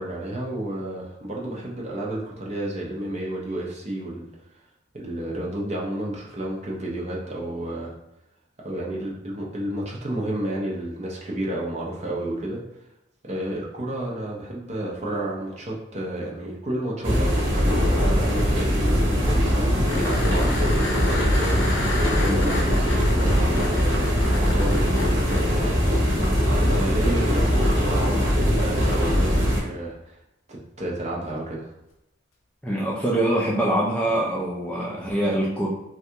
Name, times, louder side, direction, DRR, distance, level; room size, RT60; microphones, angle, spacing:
voice 1, 0.0-4.3 4.9-7.9 8.6-12.6 13.2-21.8 22.2-24.2 24.5-25.8 26.6-30.2 30.5-31.7, right 1 dB, 35° right, -3 dB, 0.7 m, -31 dB
sound 1, 17.0-29.6, equal, 70° right, 1.0 m, -21 dB
sound 2, 19.9-25.4 28.1-28.2, left 2 dB, 85° left, 0.6 m, -32 dB
voice 2, 32.6-35.7, right 1 dB, 5° left, -5 dB, 0.4 m, -24 dB
3.3 x 2.4 x 2.8 m, 0.86 s
head